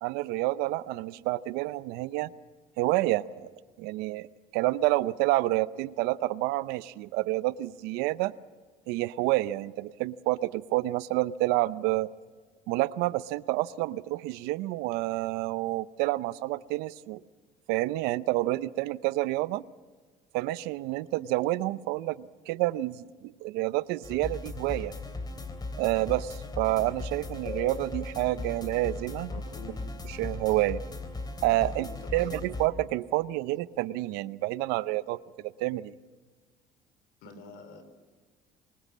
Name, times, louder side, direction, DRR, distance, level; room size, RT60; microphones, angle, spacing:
voice 1, 0.0-2.3 2.8-3.5 3.8-4.3 4.5-8.3 8.9-12.1 12.7-17.2 17.7-19.6 20.3-24.9 25.8-29.3 30.2-30.8 31.4-35.9, right 17 dB, 85° right, 17 dB, 0.7 m, -29 dB
sound 1, 24.0-32.7, left 2 dB, 25° left, 3.3 m, -38 dB
voice 2, 29.2-29.9 31.6-32.5 37.2-37.8, left 2 dB, 80° left, 9 dB, 4.1 m, -47 dB
25.5 x 20.5 x 7.4 m, 1.4 s
supercardioid pair, 95°, 16 cm